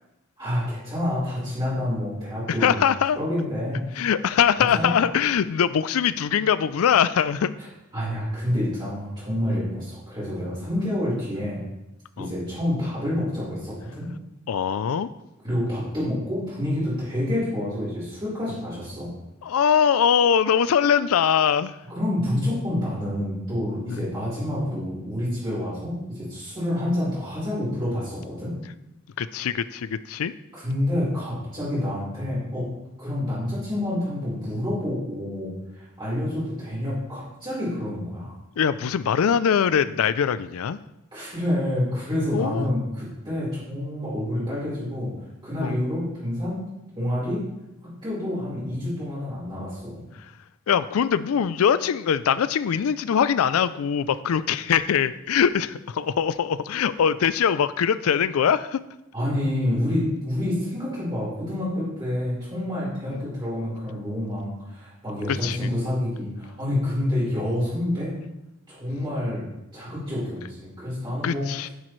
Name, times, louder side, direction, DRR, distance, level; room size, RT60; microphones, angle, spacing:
voice 1, 0.4-2.8 3.2-3.8 4.7-4.9 7.9-11.6 12.2-14.1 15.4-19.1 21.9-28.5 30.5-32.7 33.0-38.3 41.1-45.1 45.4-46.6 47.0-47.5 47.8-50.0 59.1-68.2 68.7-69.4 69.7-71.5, left 1 dB, 25° right, -10 dB, 4.1 m, -28 dB
voice 2, 2.5-3.2 4.0-7.5 12.2-12.3 14.5-15.1 19.4-21.8 23.9-24.0 29.2-30.3 38.6-40.8 42.3-42.7 45.6-45.8 50.2-50.3 50.7-58.8 63.1-63.3 65.3-65.7 71.2-71.7, left 8 dB, 85° left, 14 dB, 0.4 m, -22 dB
10.5 x 10.5 x 3.2 m, 0.92 s
head